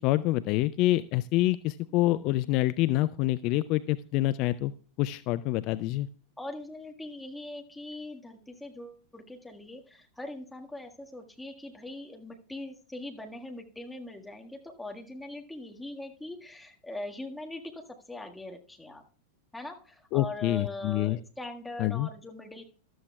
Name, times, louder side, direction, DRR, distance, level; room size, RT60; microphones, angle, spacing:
voice 1, 0.0-4.7 5.0-6.1 20.1-21.2 21.8-22.1, left 16 dB, 40° left, 16 dB, 0.4 m, -26 dB
voice 2, 6.4-19.0 19.5-22.6, left 2 dB, 5° left, 2 dB, 1.7 m, -41 dB
14.0 x 12.5 x 2.3 m, 0.42 s
figure-of-eight pair, 90°, 0 cm